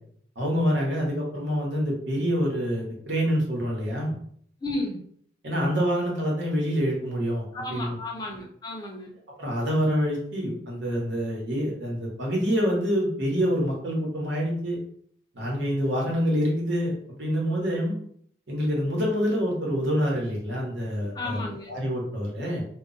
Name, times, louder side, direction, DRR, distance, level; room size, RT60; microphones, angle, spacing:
voice 1, 0.4-4.1 5.4-8.0 9.4-14.8 15.3-18.0 18.5-21.4 21.7-22.6, equal, 80° right, -2 dB, 1.0 m, -26 dB
voice 2, 4.6-5.0 7.5-9.1 21.1-21.7, left 2 dB, 20° left, 0 dB, 0.5 m, -33 dB
2.3 x 2.1 x 3.8 m, 0.62 s
head